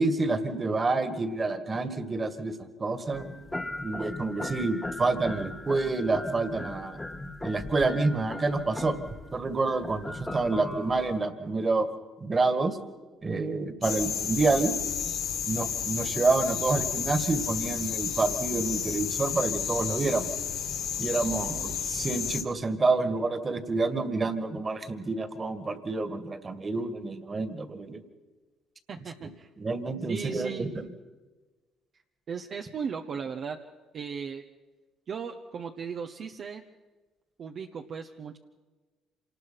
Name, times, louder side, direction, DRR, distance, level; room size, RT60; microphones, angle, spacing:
voice 1, 0.0-3.2 3.8-7.0 7.4-9.0 9.3-11.9 12.2-12.8 13.2-14.8 15.5-20.3 21.0-28.0 29.6-30.9, right 3 dB, 30° right, 11 dB, 2.1 m, -28 dB
sound 1, 3.1-11.2, left 2 dB, 15° left, 1.6 m, -38 dB
sound 2, 13.8-22.4, left 7 dB, 70° left, 2.0 m, -32 dB
voice 2, 28.9-29.5 30.1-30.7 32.3-33.6 33.9-34.4 35.1-36.6 37.4-38.4, right 6 dB, 55° right, 3 dB, 1.1 m, -36 dB
26.5 x 19.5 x 5.9 m, 1.3 s
supercardioid pair, 70°, 0 cm